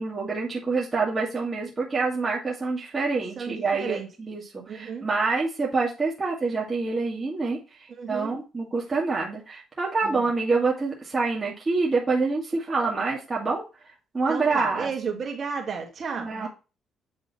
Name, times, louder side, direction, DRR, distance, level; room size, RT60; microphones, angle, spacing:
voice 1, 0.0-7.6 8.1-13.6 14.1-14.9 16.2-16.5, right 4 dB, 25° right, -3 dB, 2.0 m, -26 dB
voice 2, 3.4-4.1 4.7-5.1 7.9-8.3 10.0-10.2 14.3-16.5, right 5 dB, 50° right, 1 dB, 2.3 m, -33 dB
8.3 x 3.8 x 4.2 m, 0.30 s
cardioid pair, 115°, 0 cm